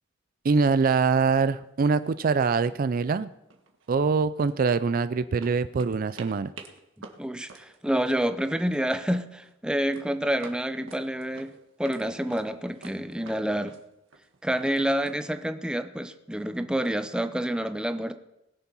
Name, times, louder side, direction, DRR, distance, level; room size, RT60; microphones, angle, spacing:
voice 1, 0.4-3.3 3.9-6.5, right 5 dB, 45° right, 14 dB, 0.4 m, -24 dB
sound 1, 1.3-1.6 1.9-2.1 2.4-3.2 3.5-5.0 5.4-8.9 9.2-9.6 9.9-12.0 12.3-15.1, right 3 dB, 75° right, 1.6 m, -49 dB
voice 2, 7.2-11.5 11.8-13.8 14.4-18.1, equal, 5° right, 9 dB, 0.6 m, -28 dB
20.5 x 7.1 x 5.4 m, 0.90 s
head